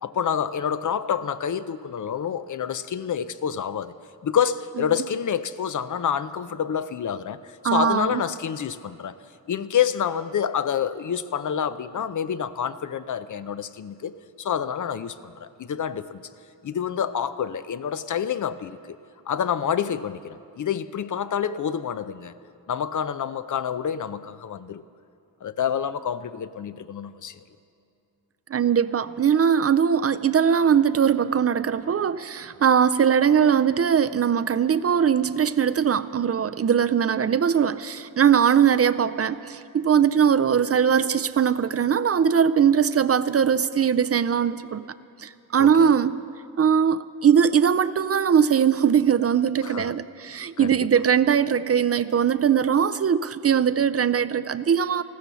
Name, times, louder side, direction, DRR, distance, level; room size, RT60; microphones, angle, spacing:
voice 1, 0.0-3.9 4.2-9.2 9.5-16.2 16.6-19.0 19.3-22.3 22.7-24.8 25.4-27.4 45.6-45.9 49.6-50.0 50.6-50.8, left 8 dB, 55° left, 0.6 m, -28 dB
voice 2, 7.6-8.2 28.5-44.8 45.2-46.2 46.6-55.0, right 8 dB, 40° right, 0.4 m, -21 dB
14.5 x 13.0 x 6.9 m
wide cardioid pair, 100°, 37 cm